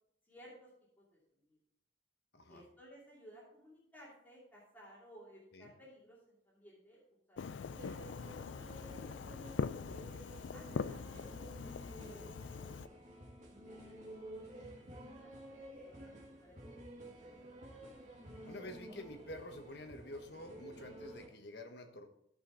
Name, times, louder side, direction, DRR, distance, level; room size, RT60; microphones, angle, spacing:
voice 1, 0.2-0.7 1.0-1.6 2.5-7.0 7.3-8.3 9.5-9.6 10.5-14.0 14.5-15.6 15.8-16.9, equal, 10° left, -7 dB, 2.6 m, -60 dB
Fireworks, 7.4-12.9, left 5 dB, 75° left, 0.4 m, -42 dB
sound 1, 7.7-21.3, right 1 dB, 40° right, 1.6 m, -52 dB
voice 2, 18.4-22.1, left 1 dB, 55° left, 5 dB, 1.2 m, -49 dB
14.5 x 5.5 x 3.9 m, 0.75 s
head